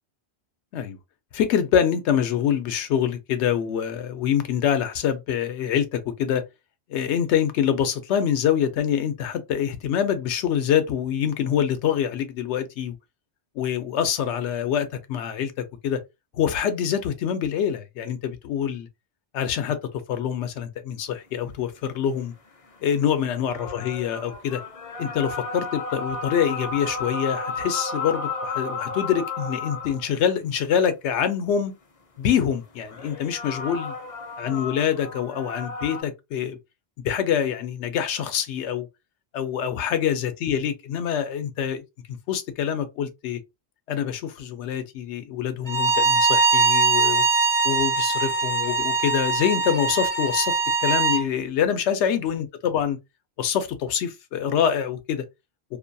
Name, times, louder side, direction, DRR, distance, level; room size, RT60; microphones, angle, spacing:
voice 1, 1.3-6.4 6.9-13.0 13.6-15.5 15.8-16.0 16.3-18.9 19.3-22.3 22.8-24.6 25.0-31.8 32.2-33.9 34.4-36.6 37.0-38.9 39.3-41.8 42.3-43.4 43.9-47.2 47.6-53.0 53.4-55.2, left 8 dB, 85° left, 0.9 m, -25 dB
sound 1, 23.2-30.1 32.9-36.0, left 4 dB, 45° left, 0.5 m, -33 dB
Bowed string instrument, 45.7-51.2, right 3 dB, 25° right, 0.4 m, -22 dB
2.6 x 2.2 x 2.5 m
omnidirectional pair, 1.1 m